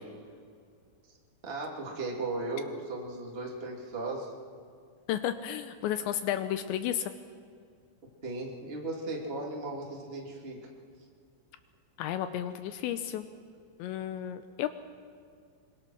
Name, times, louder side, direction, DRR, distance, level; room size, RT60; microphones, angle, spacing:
voice 1, 1.4-4.3 8.2-10.7, right 2 dB, 65° right, -1 dB, 0.6 m, -36 dB
voice 2, 5.1-7.1 12.0-13.2 13.8-14.7, left 11 dB, 85° left, 10 dB, 2.6 m, -32 dB
25.5 x 22.5 x 6.3 m, 2.3 s
omnidirectional pair, 6.0 m